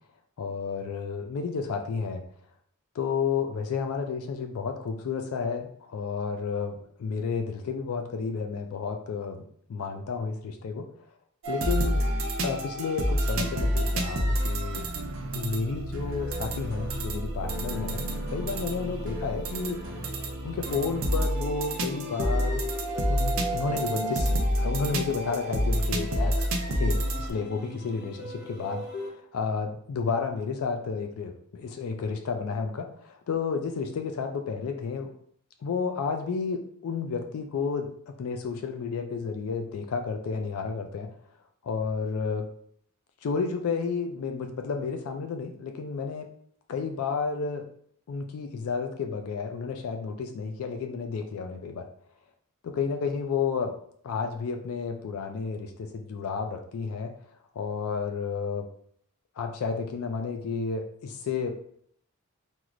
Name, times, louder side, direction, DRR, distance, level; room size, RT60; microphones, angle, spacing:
voice 1, 0.4-2.2 2.9-9.4 9.7-10.9 11.5-12.1 12.4-14.9 15.3-19.8 20.4-22.6 23.1-35.1 35.6-41.1 41.6-42.5 43.2-46.3 46.7-47.7 48.1-51.9 52.6-53.7 54.0-57.1 57.6-58.7 59.4-61.5, left 5 dB, 75° left, 5 dB, 0.3 m, -31 dB
sound 1, 11.4-27.3, equal, 60° right, 0.5 m, -29 dB
sound 2, 16.2-29.1, left 2 dB, 50° left, 0.8 m, -40 dB
4.4 x 2.0 x 2.4 m, 0.64 s
head